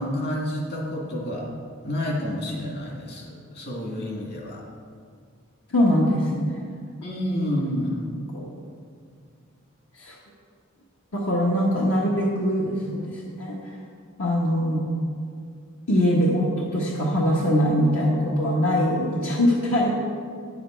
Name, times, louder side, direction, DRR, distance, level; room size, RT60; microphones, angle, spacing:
voice 1, 0.0-1.5 1.8-4.6 7.0-8.1, left 1 dB, 50° left, -2 dB, 2.0 m, -29 dB
voice 2, 5.7-6.6 8.3-8.5 10.0-10.2 11.1-13.5 14.2-14.9 15.9-19.9, equal, 75° left, -4 dB, 1.2 m, -22 dB
9.7 x 7.7 x 4.5 m, 2.2 s
head